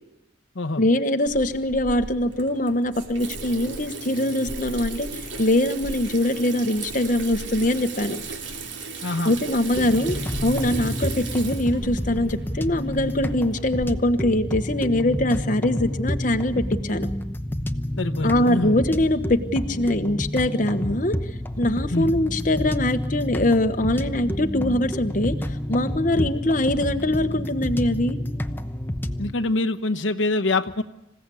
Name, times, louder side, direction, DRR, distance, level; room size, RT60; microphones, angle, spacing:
voice 1, 0.8-5.1 5.4-8.2 9.2-10.2 10.4-17.1 18.2-21.1 21.6-25.4 25.7-28.2, left 1 dB, 40° left, 7 dB, 1.2 m, -23 dB
Water tap faucet / Sink (filling or washing), 1.3-13.9, right 3 dB, 70° right, 2.9 m, -36 dB
voice 2, 9.0-9.3 18.0-18.8 21.9-22.1 26.1-26.3 29.2-30.8, left 2 dB, 75° left, 5 dB, 1.1 m, -25 dB
sound 1, 9.7-29.3, left 1 dB, 10° left, 0.9 m, -29 dB
27.0 x 16.5 x 8.5 m, 0.92 s
head